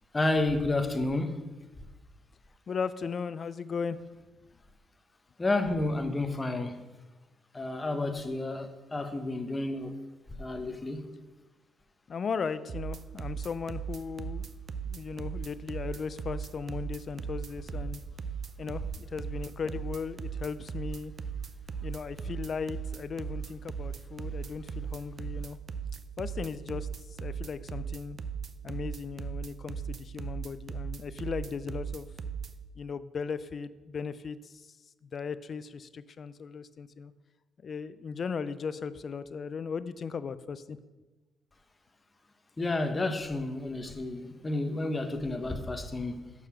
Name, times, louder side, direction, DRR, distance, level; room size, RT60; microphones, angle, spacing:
voice 1, 0.1-1.4 5.4-6.9 7.5-9.9 10.4-11.1 42.6-46.3, left 2 dB, 20° left, 7 dB, 0.8 m, -31 dB
voice 2, 2.7-4.0 12.1-14.5 14.9-18.0 18.6-21.1 21.8-25.6 26.2-28.2 28.6-32.1 32.8-34.7 35.0-37.1 37.6-40.8, left 5 dB, 50° left, 15 dB, 0.4 m, -37 dB
sound 1, 12.7-32.5, right 6 dB, 50° right, 0.5 m, -37 dB
6.5 x 5.5 x 5.8 m, 1.2 s
cardioid pair, 90°, 0 cm